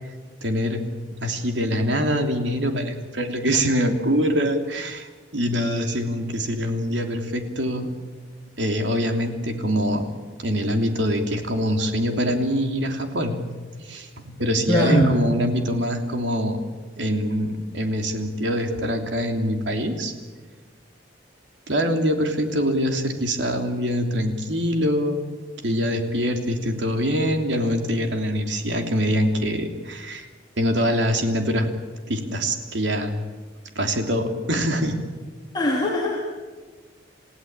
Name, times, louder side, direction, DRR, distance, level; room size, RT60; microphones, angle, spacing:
voice 1, 0.4-0.8 1.2-7.9 8.6-10.1 10.4-13.4 13.8-16.6 17.0-20.1 21.7-25.2 25.6-30.3 30.6-31.7 32.1-33.2 33.7-35.0, equal, 70° right, 4 dB, 3.1 m, -24 dB
voice 2, 14.7-15.2 35.5-36.4, equal, 25° left, -2 dB, 2.9 m, -21 dB
28.5 x 16.5 x 8.9 m, 1.4 s
head